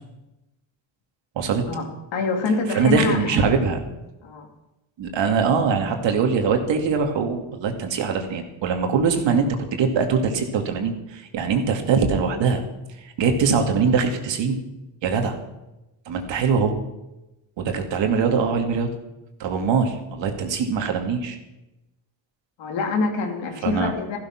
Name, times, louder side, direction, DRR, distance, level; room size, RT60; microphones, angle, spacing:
voice 1, 2.1-3.2 4.2-4.5 22.6-24.2, left 3 dB, 70° left, 2 dB, 3.2 m, -25 dB
voice 2, 2.7-3.8 5.0-12.6 13.0-14.6 15.0-15.4 16.1-16.8 17.6-18.9 19.4-21.4 23.6-23.9, right 5 dB, 70° right, 4 dB, 2.4 m, -22 dB
14.5 x 12.5 x 5.9 m, 0.96 s
cardioid pair, 120°, 46 cm